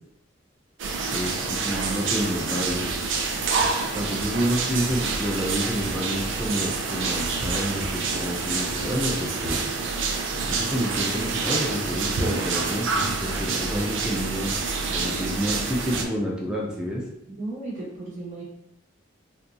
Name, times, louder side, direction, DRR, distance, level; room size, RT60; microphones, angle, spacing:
sound 1, 0.8-16.0, right 4 dB, 75° right, 0.4 m, -27 dB
voice 1, 1.1-2.9 3.9-9.7 10.5-14.5 14.9-17.0, equal, 5° right, -4 dB, 0.4 m, -29 dB
voice 2, 17.3-18.4, right 2 dB, 40° right, -6 dB, 1.0 m, -35 dB
2.7 x 2.2 x 2.5 m, 0.81 s
head